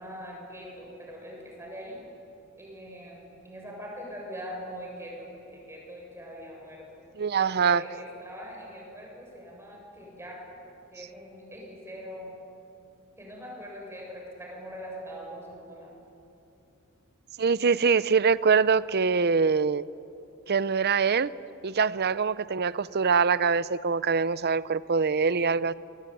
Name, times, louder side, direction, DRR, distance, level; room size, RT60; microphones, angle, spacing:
voice 1, 0.0-2.0 2.6-7.0 7.3-10.6 10.9-12.3 13.2-15.9, equal, 10° right, -2 dB, 7.4 m, -42 dB
voice 2, 7.2-7.8 17.4-19.8 20.5-21.3 21.6-25.7, right 5 dB, 45° right, 17 dB, 0.6 m, -24 dB
27.5 x 22.0 x 9.2 m, 2.8 s
head